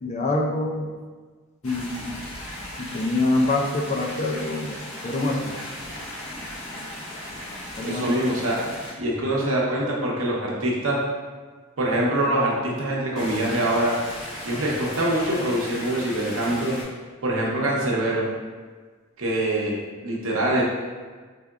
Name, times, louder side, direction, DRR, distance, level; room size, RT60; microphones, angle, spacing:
voice 1, 0.0-0.9 1.6-2.3 2.8-4.8 5.0-5.5 7.8-8.1, left 2 dB, 30° left, 1 dB, 0.3 m, -25 dB
sound 1, 1.6-8.9 13.1-16.8, left 1 dB, 65° left, 1.0 m, -37 dB
voice 2, 7.8-8.6 9.0-11.0 11.8-13.9 14.4-16.7 17.2-18.3 19.2-19.7 20.0-20.6, right 1 dB, 65° right, -3 dB, 0.8 m, -24 dB
3.7 x 3.4 x 2.3 m, 1.5 s
head